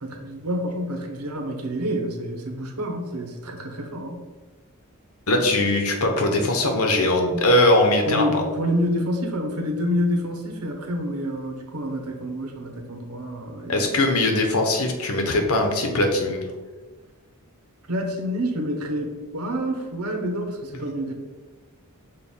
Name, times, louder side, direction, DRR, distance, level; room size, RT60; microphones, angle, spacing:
voice 1, 0.0-4.2 8.1-14.1 17.9-21.1, equal, 85° right, 3 dB, 1.1 m, -28 dB
voice 2, 5.3-8.5 13.7-16.4, left 1 dB, 75° left, 3 dB, 1.0 m, -21 dB
6.7 x 2.5 x 5.5 m, 1.3 s
head